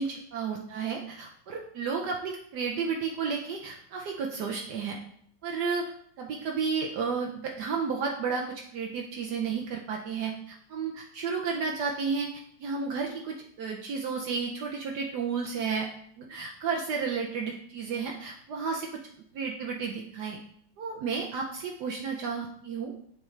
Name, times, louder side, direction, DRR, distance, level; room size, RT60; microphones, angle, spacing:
voice 1, 0.0-5.0 5.4-5.9 6.2-12.3 12.6-15.9 16.2-19.0 19.3-20.4 20.8-22.9, right 5 dB, 70° right, 0 dB, 1.2 m, -32 dB
7.0 x 5.2 x 3.2 m, 0.65 s
omnidirectional pair, 1.9 m